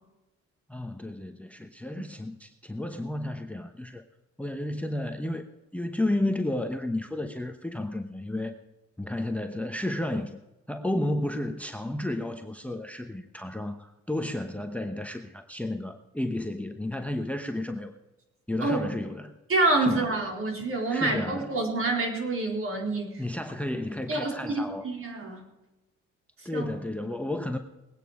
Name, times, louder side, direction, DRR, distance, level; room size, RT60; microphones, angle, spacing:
voice 1, 0.7-4.1 4.4-8.5 9.0-10.4 10.7-17.9 18.5-19.4 19.8-20.1 20.9-21.5 23.2-24.9 26.4-27.6, left 1 dB, 5° left, 7 dB, 0.9 m, -32 dB
voice 2, 19.5-23.2 24.1-25.4 26.4-26.7, right 2 dB, 45° right, 1 dB, 4.2 m, -27 dB
20.5 x 9.2 x 5.0 m, 1.0 s
cardioid pair, 90°, 30 cm